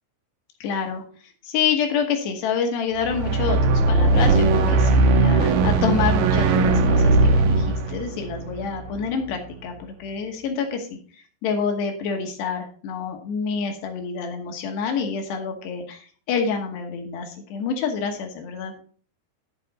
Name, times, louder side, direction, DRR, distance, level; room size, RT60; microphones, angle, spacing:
voice 1, 0.6-1.0 1.4-11.0 11.4-18.7, left 6 dB, 75° left, 4 dB, 3.3 m, -27 dB
sound 1, 3.0-9.3, right 3 dB, 75° right, 2.6 m, -19 dB
11.5 x 5.8 x 4.0 m, 0.43 s
omnidirectional pair, 5.1 m